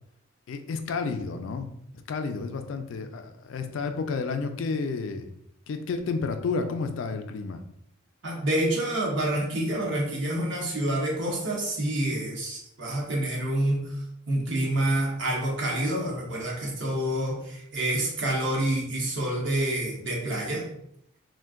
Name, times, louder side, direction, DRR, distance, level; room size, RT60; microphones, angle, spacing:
voice 1, 0.5-1.7 1.9-5.3 5.7-7.6, left 4 dB, 70° left, 7 dB, 0.3 m, -31 dB
voice 2, 8.2-13.9 14.3-20.7, right 1 dB, 60° right, -2 dB, 0.8 m, -27 dB
2.5 x 2.2 x 3.5 m, 0.74 s
head